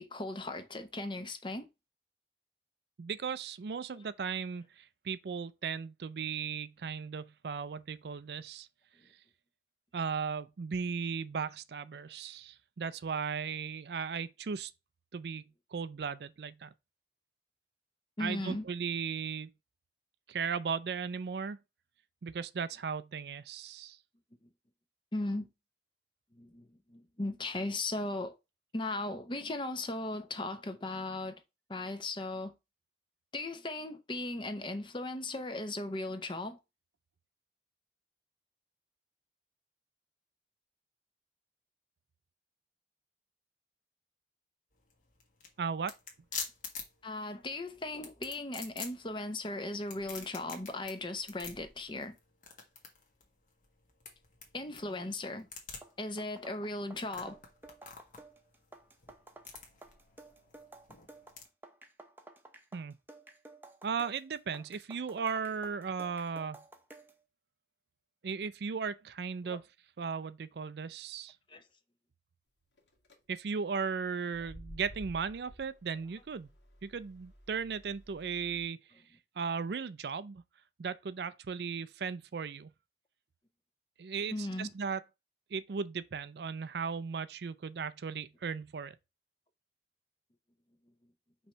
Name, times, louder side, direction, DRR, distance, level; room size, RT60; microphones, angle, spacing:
voice 1, 0.0-1.7 18.2-18.7 25.1-25.5 26.3-28.4 28.7-31.4 31.7-32.5 33.3-36.6 47.0-52.1 54.5-55.5 56.0-57.4 69.4-69.6 71.5-71.6 84.3-84.7, left 2 dB, 30° left, 0.7 m, -37 dB
voice 2, 3.0-8.7 9.9-14.7 15.1-15.4 15.7-16.7 18.2-19.5 20.3-21.6 22.2-24.0 45.6-45.9 62.7-62.9 63.8-66.6 68.2-69.6 70.0-71.4 73.3-76.5 76.8-78.8 79.4-80.4 80.8-82.7 84.0-85.0 85.5-89.0, right 6 dB, 70° right, 0.4 m, -36 dB
sound 1, 44.7-61.4, left 5 dB, 50° left, 1.6 m, -47 dB
sound 2, 55.6-67.2, right 2 dB, 10° right, 0.8 m, -54 dB
sound 3, 72.8-73.1 74.2-78.6, equal, 80° left, 1.7 m, -53 dB
5.5 x 3.2 x 5.5 m
head